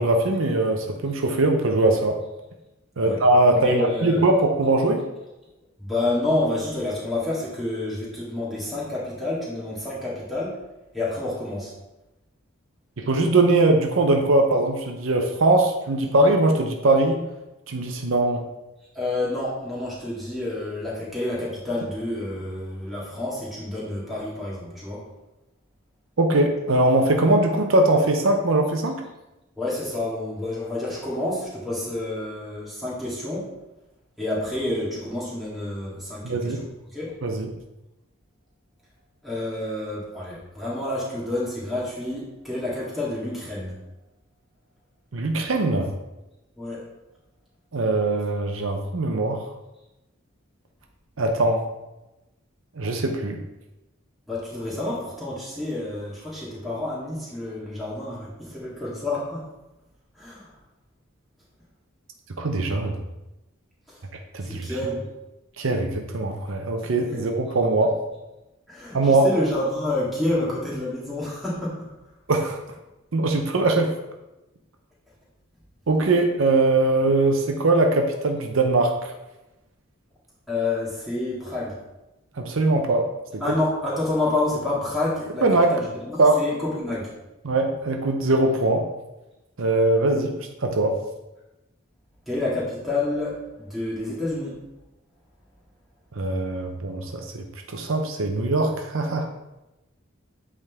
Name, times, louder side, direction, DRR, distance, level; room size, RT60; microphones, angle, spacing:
voice 1, 0.0-2.2 3.0-5.0 13.1-17.2 17.7-18.4 26.2-29.0 36.2-36.6 37.2-37.5 45.1-45.9 47.7-49.4 51.2-51.6 52.8-53.4 62.4-63.0 64.3-64.7 65.6-67.9 68.9-69.3 72.3-72.6 73.1-73.9 75.9-79.1 82.4-83.1 83.3-83.4 85.4-85.8 86.2-86.4 87.4-88.8 89.6-91.0 96.1-99.3, right 2 dB, 70° right, 3 dB, 0.7 m, -21 dB
voice 2, 3.0-4.2 5.8-10.6 10.9-11.7 18.9-25.0 29.6-33.5 34.2-36.5 36.9-37.1 39.2-43.7 46.6-46.8 54.3-59.4 60.2-60.5 63.9-64.0 64.4-65.1 67.1-67.2 68.7-71.9 80.5-81.8 83.4-87.1 92.3-94.5, left 2 dB, ahead, -7 dB, 1.8 m, -29 dB
8.3 x 3.7 x 3.5 m, 0.98 s
head